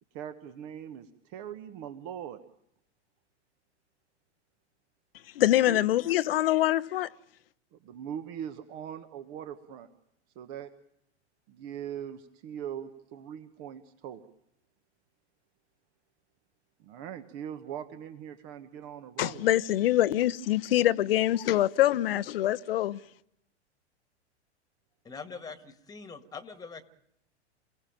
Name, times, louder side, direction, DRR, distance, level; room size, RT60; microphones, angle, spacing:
voice 1, 0.1-2.4 5.7-5.8 7.7-9.9 10.3-10.7 11.5-14.2 16.8-19.4, right 9 dB, 40° right, 1.4 m, -41 dB
voice 2, 5.3-7.1 19.2-23.0, left 13 dB, 55° left, 0.9 m, -24 dB
voice 3, 25.0-26.8, left 5 dB, 10° left, 1.7 m, -43 dB
28.5 x 17.0 x 9.1 m
figure-of-eight pair, 95°, 35 cm